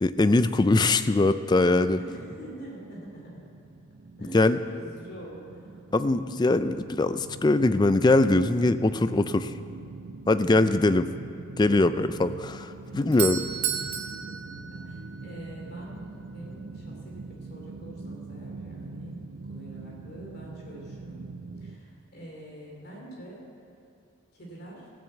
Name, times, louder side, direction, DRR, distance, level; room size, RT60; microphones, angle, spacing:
voice 1, 0.0-2.0 4.3-4.6 5.9-9.5 10.3-11.1 11.6-13.4, left 2 dB, 20° left, 12 dB, 0.3 m, -22 dB
voice 2, 1.9-3.5 4.2-5.8 14.3-21.3 21.6-23.4 24.3-24.9, right 1 dB, 50° left, -2 dB, 3.0 m, -45 dB
sound 1, 2.4-21.8, right 3 dB, 60° right, 0.6 m, -43 dB
Doorbell, 12.8-15.6, right 9 dB, 85° right, 1.1 m, -33 dB
15.5 x 7.2 x 8.0 m, 2.6 s
head